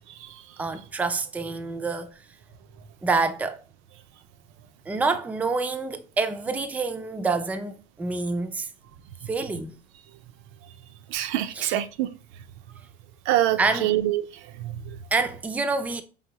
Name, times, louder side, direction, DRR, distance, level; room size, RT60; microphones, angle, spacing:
voice 1, 0.6-2.1 3.0-3.6 4.9-8.7 9.3-9.8 11.5-11.8 13.6-14.0 15.1-16.0, right 3 dB, 10° right, 0.3 m, -27 dB
voice 2, 11.1-12.1 13.3-14.2 14.6-15.0, right 13 dB, 70° right, 0.5 m, -25 dB
4.9 x 2.6 x 2.8 m
supercardioid pair, 120°, 20 cm